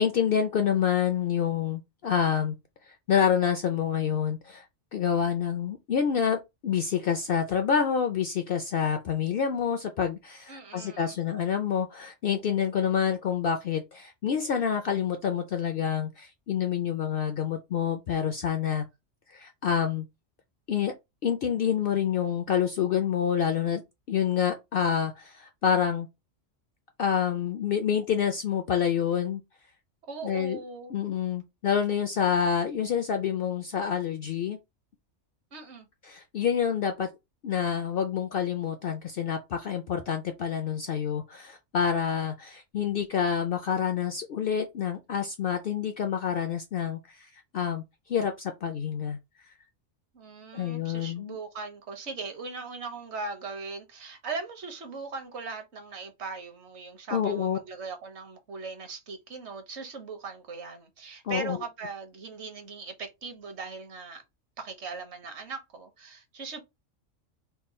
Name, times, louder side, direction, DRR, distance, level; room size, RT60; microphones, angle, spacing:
voice 1, 0.0-2.6 3.1-4.6 4.9-18.9 19.3-20.0 20.7-20.9 21.2-23.8 24.1-26.1 27.0-29.4 30.2-30.6 30.9-34.6 36.1-37.1 37.4-47.8 48.1-49.2 50.5-51.4 57.1-57.6 61.2-61.6, left 8 dB, 60° left, 0.6 m, -27 dB
voice 2, 10.5-11.2 30.1-30.9 35.5-35.9 50.1-64.2 64.6-66.6, right 4 dB, 60° right, 1.2 m, -39 dB
3.6 x 2.2 x 4.2 m
omnidirectional pair, 1.3 m